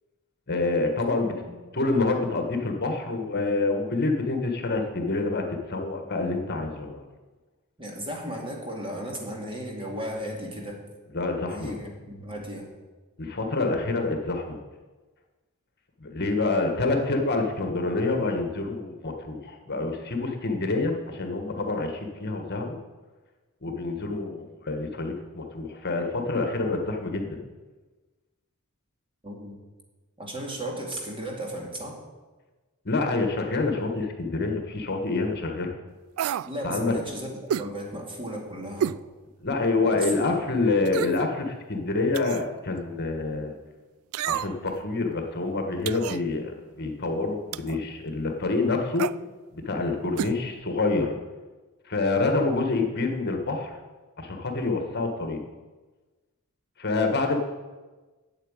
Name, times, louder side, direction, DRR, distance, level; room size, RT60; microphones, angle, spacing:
voice 1, 0.5-1.3 1.7-7.0 11.1-11.7 13.2-14.6 16.0-22.8 23.6-27.4 32.8-35.7 36.6-36.9 39.4-43.6 44.3-49.1 49.5-51.1 51.9-53.8 54.2-55.4 56.8-57.4, left 3 dB, 50° left, 4 dB, 1.5 m, -27 dB
voice 2, 1.1-1.4 7.8-10.8 11.4-12.7 29.2-29.6 30.2-32.0 36.5-39.0 39.8-40.4, equal, 25° right, 0 dB, 2.3 m, -35 dB
sound 1, 36.2-36.5 37.5-37.7 38.8-39.0 39.5-39.6 40.9-41.3 42.1-42.5 44.1-44.7 45.9-46.2 47.5-47.8 49.0-49.2 50.2-50.4 50.6-50.7, right 9 dB, 70° right, 0.3 m, -29 dB
8.9 x 8.1 x 8.9 m, 1.3 s
head